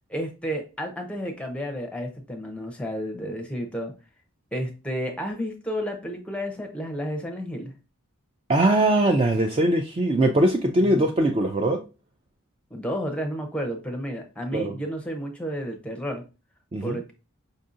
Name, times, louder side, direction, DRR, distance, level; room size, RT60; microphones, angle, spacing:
voice 1, 0.1-3.9 4.5-7.7 10.8-11.1 12.7-16.2 16.8-17.1, equal, 5° left, 0.6 m, -31 dB
voice 2, 8.5-11.8 14.5-14.7 16.7-17.0, right 1 dB, 25° right, 0.3 m, -21 dB
5.3 x 2.7 x 2.5 m
head